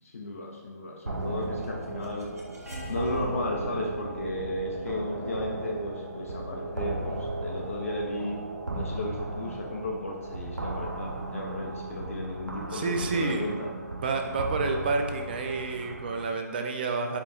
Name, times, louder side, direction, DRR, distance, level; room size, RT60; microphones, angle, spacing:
voice 1, 0.0-2.3 2.9-8.4 8.7-13.7, left 1 dB, 50° left, -1 dB, 0.5 m, -34 dB
sound 1, 1.1-16.3, right 2 dB, 80° right, 0.6 m, -36 dB
sound 2, 1.2-7.1, left 1 dB, 55° right, 1.1 m, -48 dB
voice 2, 12.7-13.7 14.0-17.2, right 4 dB, 35° right, 3 dB, 0.4 m, -29 dB
4.5 x 2.3 x 4.1 m, 1.4 s
figure-of-eight pair, 140°, 9 cm